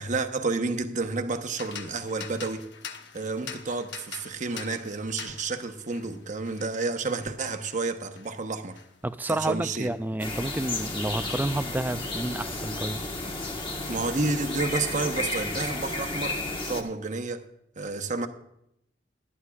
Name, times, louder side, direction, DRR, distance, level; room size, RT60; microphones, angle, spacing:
voice 1, 0.0-2.7 3.1-8.8 9.3-9.9 13.9-17.4 17.8-18.3, right 3 dB, 45° right, 1.0 m, -30 dB
sound 1, 1.5-11.2 11.5-12.8, left 7 dB, 70° left, 1.0 m, -46 dB
voice 2, 9.0-13.0, right 1 dB, 10° right, 0.3 m, -30 dB
sound 2, 10.2-16.8, left 2 dB, 30° left, 1.3 m, -32 dB
20.0 x 11.0 x 2.4 m
head